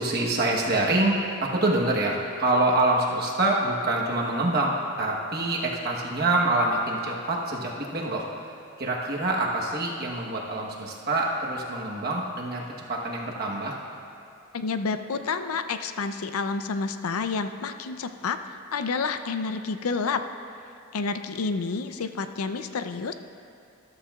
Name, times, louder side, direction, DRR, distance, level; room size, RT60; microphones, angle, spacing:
voice 1, 0.0-8.5 8.8-12.6 12.9-13.8, right 2 dB, 45° right, -2 dB, 1.1 m, -26 dB
voice 2, 14.5-18.4 18.7-20.2 20.9-23.1, left 4 dB, 85° left, 9 dB, 0.5 m, -29 dB
13.5 x 13.0 x 2.4 m, 2.7 s
head